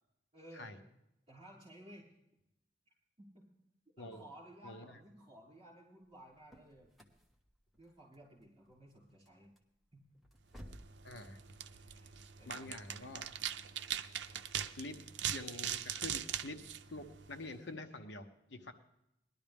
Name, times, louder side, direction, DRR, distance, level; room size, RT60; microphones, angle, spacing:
voice 1, 0.3-0.7 1.3-2.1 3.2-3.3 4.0-6.9 7.8-9.5 9.9-10.0 11.7-12.1 12.4-12.9, right 1 dB, 30° right, -4 dB, 5.9 m, -56 dB
sound 1, 6.1-11.0, equal, ahead, 1.2 m, -58 dB
sound 2, 10.6-17.6, right 9 dB, 70° right, 0.6 m, -41 dB
voice 2, 11.0-11.4 12.5-13.3 14.8-15.0 15.3-16.6 16.9-18.7, left 2 dB, 70° left, 7 dB, 1.1 m, -46 dB
19.5 x 12.0 x 3.5 m, 0.85 s
head